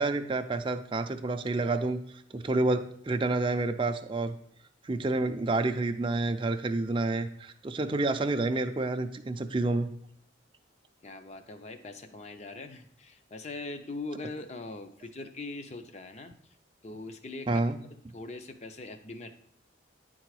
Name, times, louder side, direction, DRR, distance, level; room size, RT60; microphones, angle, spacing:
voice 1, 0.0-2.0 2.3-4.4 4.8-9.9 17.5-17.8, right 2 dB, 25° right, 7 dB, 0.4 m, -29 dB
voice 2, 11.0-16.3 16.8-17.7 18.1-19.3, left 2 dB, 35° left, 8 dB, 0.6 m, -41 dB
10.0 x 3.8 x 4.7 m, 0.66 s
head